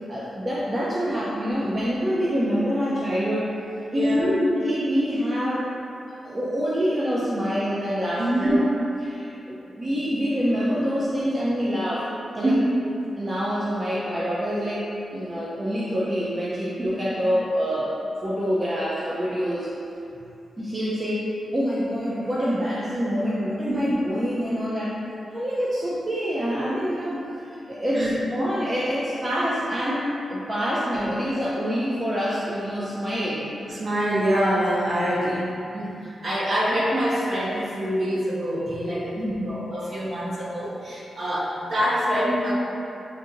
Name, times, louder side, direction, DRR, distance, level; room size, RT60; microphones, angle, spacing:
voice 1, 0.1-3.5 3.9-5.7 6.2-8.6 9.0-12.6 13.2-17.9 18.2-19.7 20.6-25.0 25.3-33.5 39.2-39.5, equal, 30° right, -7 dB, 0.6 m, -26 dB
voice 2, 3.9-4.3 8.2-8.6 12.4-12.6 16.8-16.9 23.7-23.8 27.9-28.1 33.7-42.5, equal, 55° right, -7 dB, 1.3 m, -25 dB
7.4 x 2.8 x 2.5 m, 2.7 s
cardioid pair, 80°, 0 cm